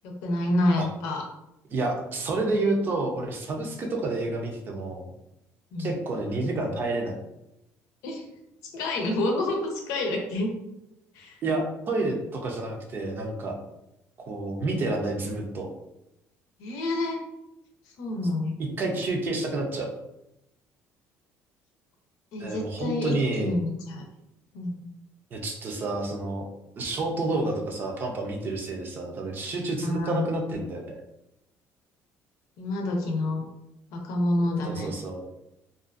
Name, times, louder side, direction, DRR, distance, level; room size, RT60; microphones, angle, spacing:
voice 1, 0.0-1.2 5.7-5.9 8.0-8.2 8.7-10.5 11.2-11.4 16.6-17.2 18.0-18.6 22.3-24.1 24.5-24.8 29.8-30.2 32.6-33.4 33.9-34.9, left 1 dB, 85° left, 1 dB, 0.6 m, -28 dB
voice 2, 1.7-5.1 5.8-7.2 11.4-13.6 14.2-15.7 18.8-19.9 22.4-23.6 25.3-26.4 26.7-31.0 34.6-35.2, right 2 dB, 40° right, 2 dB, 0.5 m, -29 dB
2.5 x 2.4 x 2.4 m, 0.86 s
cardioid pair, 130°, 5 cm